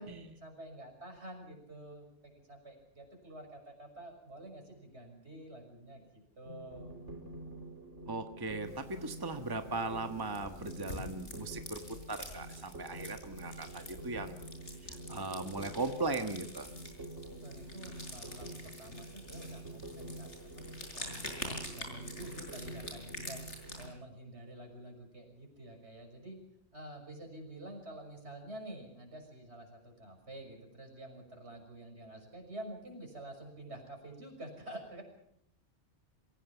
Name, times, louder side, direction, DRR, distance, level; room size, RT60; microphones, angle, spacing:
voice 1, 0.0-7.0 17.4-23.4 23.8-26.4 26.7-35.0, right 1 dB, 65° right, 3 dB, 6.5 m, -49 dB
sound 1, 6.5-23.9, right 1 dB, 85° right, 3.5 m, -47 dB
voice 2, 8.1-11.8 12.1-14.4 14.8-16.7, right 3 dB, 20° right, 7 dB, 1.4 m, -38 dB
sound 2, 8.7-23.8, left 1 dB, 75° left, 6.4 m, -47 dB
27.5 x 16.5 x 7.3 m, 0.70 s
omnidirectional pair, 1.2 m